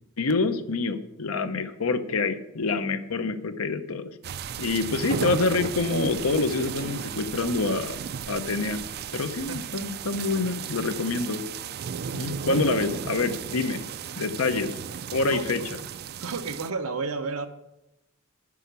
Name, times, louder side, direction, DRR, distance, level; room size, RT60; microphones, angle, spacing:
voice 1, 0.2-4.1 4.6-8.0 8.3-8.8 9.1-11.4 12.1-13.8 14.2-14.8 15.1-15.6, left 3 dB, 85° left, 0.8 m, -26 dB
sound 1, 4.2-16.7, right 7 dB, 50° right, 0.4 m, -35 dB
voice 2, 12.5-12.8 14.1-14.2 15.3-15.9 16.2-17.5, right 4 dB, 85° right, 0.8 m, -32 dB
9.8 x 5.9 x 6.8 m
head